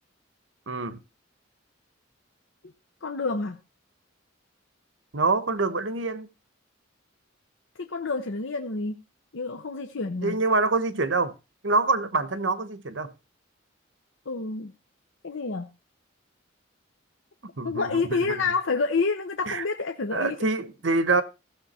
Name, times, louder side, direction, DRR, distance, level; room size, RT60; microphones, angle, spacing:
voice 1, 0.7-1.0 5.1-6.3 10.2-11.3 11.6-13.1 17.6-18.4 19.5-19.6 20.1-21.2, right 3 dB, 65° right, 1.0 m, -25 dB
voice 2, 3.0-3.6 7.8-9.0 9.3-10.4 14.3-14.7 15.2-15.7 17.6-20.4, left 4 dB, 70° left, 0.8 m, -28 dB
15.0 x 6.7 x 4.2 m
head